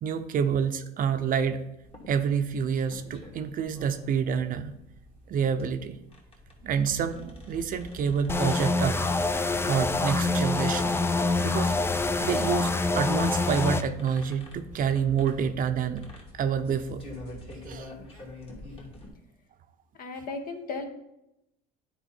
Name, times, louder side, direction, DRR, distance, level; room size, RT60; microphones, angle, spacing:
voice 1, 0.0-1.6 2.1-4.8 5.3-6.0 6.6-9.0 9.3-11.0 11.4-16.0 16.3-17.0 17.7-17.9, right 7 dB, 50° right, 9 dB, 0.7 m, -28 dB
sound 1, 1.8-19.1, left 2 dB, 30° left, 2.2 m, -48 dB
sound 2, 6.5-17.7, right 1 dB, 65° left, 2.7 m, -48 dB
sound 3, 8.3-13.8, left 3 dB, 15° left, 0.4 m, -26 dB
voice 2, 20.0-20.8, left 3 dB, 50° left, 6 dB, 1.2 m, -35 dB
9.2 x 4.4 x 4.3 m, 0.86 s
supercardioid pair, 95°, 19 cm